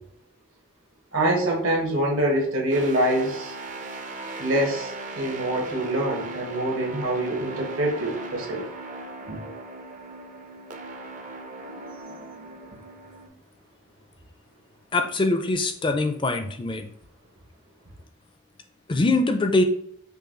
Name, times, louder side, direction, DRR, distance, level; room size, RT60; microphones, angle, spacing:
voice 1, 1.1-3.5 4.4-8.6 9.3-9.4 11.6-12.2, right 1 dB, 80° right, -1 dB, 1.4 m, -25 dB
sound 1, 2.7-13.3, right 2 dB, 40° right, 0.5 m, -38 dB
voice 2, 14.9-16.9 18.9-19.6, left 2 dB, 25° left, 6 dB, 0.4 m, -23 dB
5.4 x 2.3 x 3.8 m, 0.67 s
head